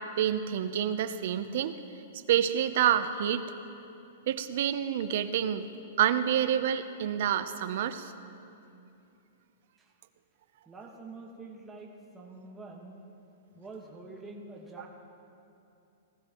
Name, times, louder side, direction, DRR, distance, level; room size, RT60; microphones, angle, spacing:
voice 1, 0.0-1.8 2.3-3.4 4.3-5.7 6.0-8.1, right 10 dB, 60° right, 11 dB, 0.6 m, -28 dB
voice 2, 10.6-13.0 13.5-14.9, right 3 dB, 10° right, -2 dB, 1.5 m, -46 dB
19.0 x 15.0 x 3.0 m, 2.7 s
hypercardioid pair, 155°, 0 cm